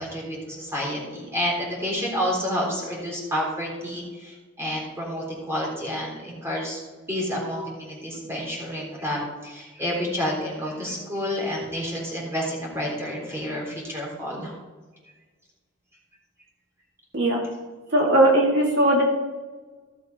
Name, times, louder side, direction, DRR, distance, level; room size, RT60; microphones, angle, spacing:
voice 1, 0.0-6.8 7.1-14.5, equal, 15° right, -3 dB, 3.8 m, -29 dB
voice 2, 17.9-19.0, right 1 dB, 60° right, -3 dB, 2.6 m, -19 dB
16.0 x 6.6 x 5.4 m, 1.3 s
head